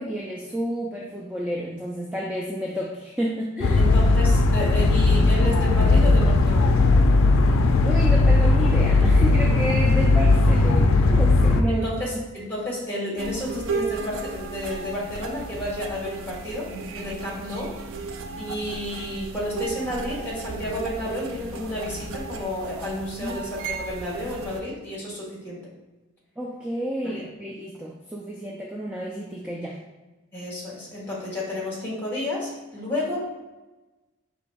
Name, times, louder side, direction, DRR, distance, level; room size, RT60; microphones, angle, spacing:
voice 1, 0.0-3.9 7.8-11.9 23.2-23.4 26.4-29.8, equal, 5° right, -3 dB, 0.3 m, -30 dB
sound 1, 3.6-11.6, left 2 dB, 80° left, 0.4 m, -18 dB
voice 2, 3.8-6.7 11.7-17.8 18.4-25.6 27.1-27.3 30.3-33.2, left 1 dB, 10° left, -5 dB, 1.3 m, -31 dB
sound 2, 13.2-24.6, right 4 dB, 75° right, 0.4 m, -35 dB
4.9 x 3.0 x 3.4 m, 1.1 s
head